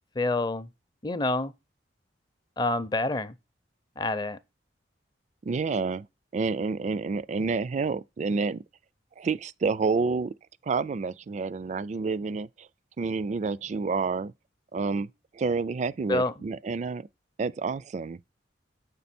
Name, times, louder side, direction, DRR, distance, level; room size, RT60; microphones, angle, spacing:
voice 1, 0.1-0.7 1.0-1.5 2.6-3.3 4.0-4.4 16.1-16.4, left 2 dB, 25° left, 0.5 m, -27 dB
voice 2, 5.4-6.1 6.3-8.6 9.2-10.3 10.6-12.7 13.0-14.3 14.7-15.1 15.3-17.1 17.4-18.2, right 4 dB, 40° right, 0.3 m, -29 dB
7.4 x 5.3 x 4.2 m
head